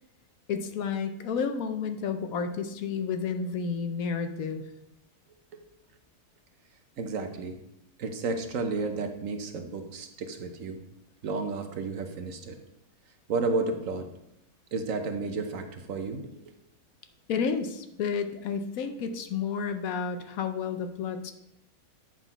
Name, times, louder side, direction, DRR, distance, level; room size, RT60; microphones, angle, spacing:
voice 1, 0.5-4.6 17.3-21.3, left 6 dB, 70° left, 8 dB, 1.0 m, -31 dB
voice 2, 7.0-7.6 8.0-10.8 11.2-12.6 13.3-14.1 14.7-16.5, right 3 dB, 60° right, 7 dB, 1.1 m, -32 dB
9.1 x 4.0 x 5.4 m, 0.84 s
omnidirectional pair, 1.6 m